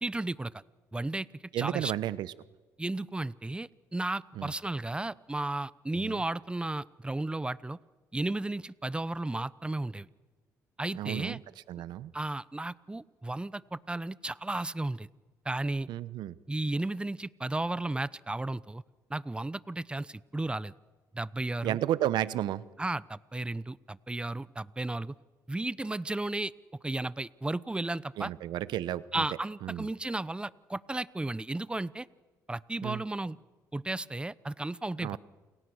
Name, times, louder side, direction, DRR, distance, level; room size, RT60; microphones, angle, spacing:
voice 1, 0.0-0.5 0.9-1.3 1.6-1.9 2.8-7.8 8.1-10.1 10.8-11.4 12.1-15.1 15.4-15.9 16.5-18.8 19.1-20.7 21.1-21.8 22.8-25.1 25.5-26.5 26.8-28.3 29.1-32.1 32.5-33.4 33.7-35.1, right 2 dB, 15° right, 18 dB, 0.9 m, -34 dB
voice 2, 1.5-2.3 4.4-4.5 6.0-6.2 10.9-11.4 11.7-12.1 15.9-16.4 21.6-22.7 28.2-29.2 29.6-29.9 32.8-33.0 35.0-35.2, right 12 dB, 80° right, 16 dB, 1.0 m, -32 dB
29.5 x 28.0 x 6.4 m, 1.3 s
supercardioid pair, 70°, 7 cm